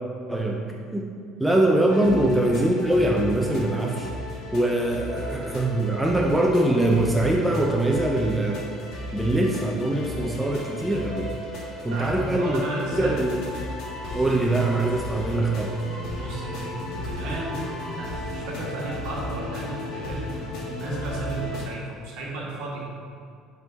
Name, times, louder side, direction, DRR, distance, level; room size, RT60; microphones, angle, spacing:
voice 1, 0.3-0.6 0.9-1.1 1.4-4.1 4.5-8.6 9.1-11.3 11.8-12.6 12.9-13.4 14.1-15.8, right 1 dB, 5° right, -1 dB, 0.4 m, -23 dB
sound 1, 1.9-21.6, left 1 dB, 55° left, 1.2 m, -35 dB
voice 2, 11.9-13.2 16.1-20.4 20.6-22.9, right 2 dB, 60° right, -3 dB, 1.5 m, -34 dB
7.9 x 3.6 x 4.0 m, 2.3 s
cardioid pair, 175°, 0 cm